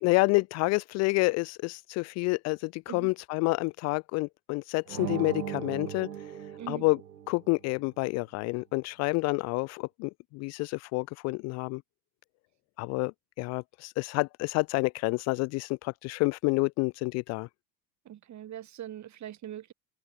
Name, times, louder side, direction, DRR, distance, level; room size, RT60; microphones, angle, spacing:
voice 1, 0.0-6.3 6.7-7.0 7.3-11.8 12.8-17.5, left 26 dB, 35° left, 0.4 m, -29 dB
sound 1, 4.9-7.6, right 9 dB, 85° right, 0.8 m, -38 dB
voice 2, 18.0-19.7, right 11 dB, 35° right, 2.5 m, -42 dB
open air
figure-of-eight pair, 70°, 49 cm